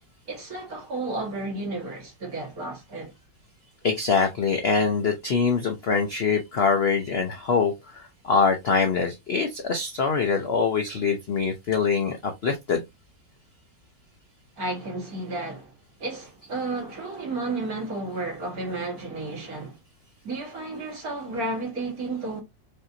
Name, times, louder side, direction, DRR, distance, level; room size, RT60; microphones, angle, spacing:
voice 1, 0.3-3.1 14.6-19.8 20.2-22.4, right 2 dB, 55° right, 2.2 m, -32 dB
voice 2, 3.8-12.8, left 5 dB, 75° left, 0.5 m, -24 dB
5.3 x 2.8 x 2.6 m
omnidirectional pair, 2.0 m